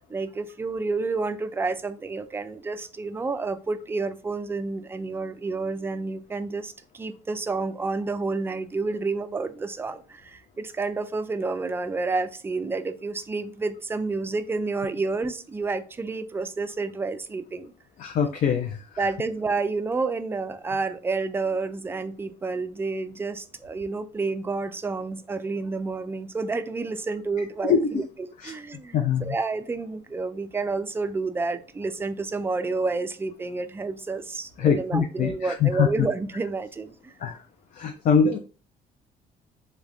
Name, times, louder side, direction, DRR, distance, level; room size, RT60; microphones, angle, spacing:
voice 1, 0.1-17.7 19.0-37.1, right 3 dB, 15° right, 0.3 m, -30 dB
voice 2, 18.0-18.8 27.7-27.8 28.9-29.2 34.6-35.9 37.2-37.4 37.8-38.4, left 7 dB, 50° left, 0.5 m, -22 dB
3.3 x 3.2 x 2.5 m
cardioid pair, 110°, 17 cm